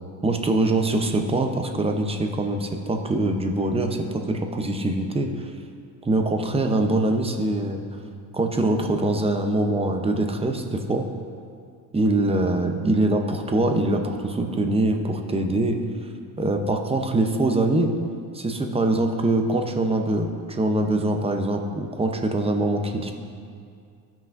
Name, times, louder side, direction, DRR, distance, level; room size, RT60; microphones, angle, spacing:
voice 1, 0.2-5.5 6.0-7.8 8.3-11.1 11.9-15.8 16.4-17.9 18.3-23.1, right 2 dB, 10° right, 4 dB, 0.8 m, -23 dB
15.0 x 5.8 x 2.6 m, 2.3 s
hypercardioid pair, 90°, 50 cm